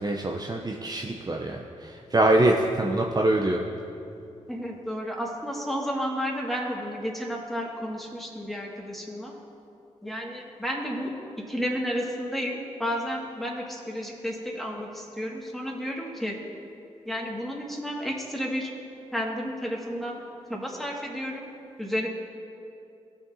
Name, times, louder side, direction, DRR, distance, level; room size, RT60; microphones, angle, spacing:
voice 1, 0.0-3.6, right 1 dB, 30° right, 0 dB, 0.7 m, -24 dB
voice 2, 4.5-9.3 10.0-11.1 11.5-16.4 17.1-18.7 19.1-20.2 20.5-21.5 21.8-22.1, equal, ahead, -2 dB, 2.0 m, -32 dB
15.0 x 5.1 x 2.8 m, 2.7 s
supercardioid pair, 40°, 14 cm